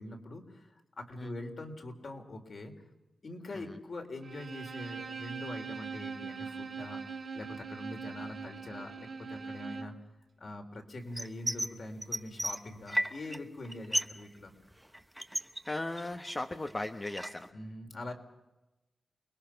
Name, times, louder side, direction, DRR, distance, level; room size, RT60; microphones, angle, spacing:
voice 1, 0.0-2.7 3.2-9.9 10.4-14.5 17.5-18.1, left 2 dB, 50° left, 4 dB, 3.7 m, -43 dB
Bowed string instrument, 4.2-10.0, right 5 dB, 55° right, 2.6 m, -41 dB
sound 1, 11.2-11.7 12.0-13.4 13.6-14.2 14.5-16.3 16.7-17.5, equal, 5° right, 0.9 m, -34 dB
voice 2, 15.7-17.5, left 2 dB, 25° left, 6 dB, 1.1 m, -37 dB
29.0 x 21.5 x 5.9 m, 1.0 s
wide cardioid pair, 125°, 0 cm